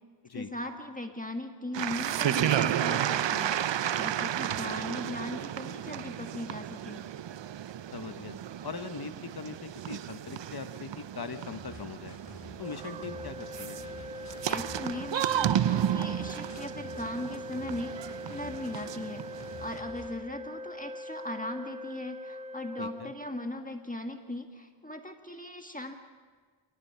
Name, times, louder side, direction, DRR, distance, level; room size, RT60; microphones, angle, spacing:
voice 1, 0.3-3.6 4.0-7.0 14.5-25.9, left 1 dB, 15° left, 4 dB, 1.9 m, -39 dB
sound 1, 1.7-19.8, right 10 dB, 65° right, 0.6 m, -33 dB
voice 2, 7.9-12.2 12.6-13.8 22.8-23.1, left 5 dB, 50° left, 9 dB, 1.2 m, -41 dB
sound 2, 11.1-20.2, left 2 dB, 35° left, 3.5 m, -50 dB
Organ, 12.6-23.6, left 1 dB, 15° right, 0.9 m, -42 dB
29.0 x 17.5 x 5.7 m, 1.6 s
cardioid pair, 50°, 47 cm